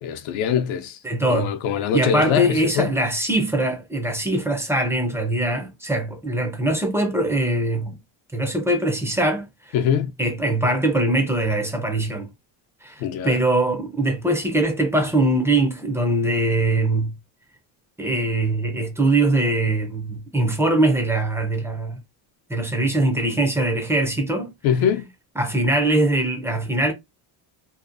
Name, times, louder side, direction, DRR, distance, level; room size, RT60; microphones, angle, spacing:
voice 1, 0.0-1.0 1.3-2.9 9.7-10.1 13.0-13.4 24.6-25.1, left 8 dB, 75° left, 0.6 m, -23 dB
voice 2, 1.0-1.5 1.9-8.0 8.3-9.5 10.2-12.3 12.8-17.1 18.0-22.0 22.5-24.5 25.4-26.9, right 1 dB, 5° right, 0.3 m, -22 dB
2.8 x 2.1 x 2.4 m
cardioid pair, 125°, 49 cm